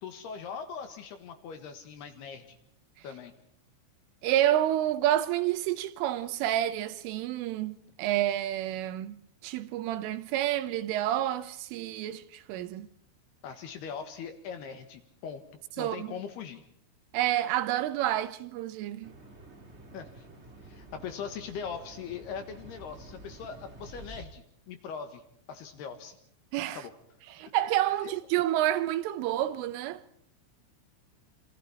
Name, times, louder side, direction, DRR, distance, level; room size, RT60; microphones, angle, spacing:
voice 1, 0.0-2.6 3.0-3.3 13.4-15.4 15.8-16.6 19.9-20.3 20.6-25.2 25.5-26.2 26.7-26.9, left 6 dB, 65° left, 3.1 m, -41 dB
voice 2, 4.2-9.2 9.4-12.9 15.8-16.1 17.1-19.1 26.5-26.8 27.4-30.0, right 13 dB, 80° right, 3.5 m, -29 dB
sound 1, 19.0-24.2, right 2 dB, 45° right, 0.8 m, -49 dB
27.5 x 26.0 x 4.3 m
omnidirectional pair, 5.8 m